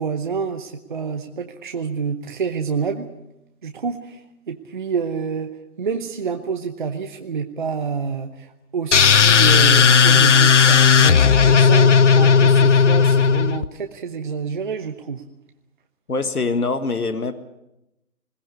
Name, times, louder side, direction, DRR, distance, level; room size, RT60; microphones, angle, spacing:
voice 1, 0.0-3.1 3.6-4.2 4.5-15.2, right 6 dB, 35° right, 6 dB, 1.0 m, -28 dB
sound 1, 8.9-13.7, left 6 dB, 55° left, 0.8 m, -14 dB
voice 2, 16.1-17.3, left 3 dB, 90° left, 10 dB, 1.9 m, -23 dB
21.0 x 18.0 x 8.3 m, 0.89 s
figure-of-eight pair, 160°, 44 cm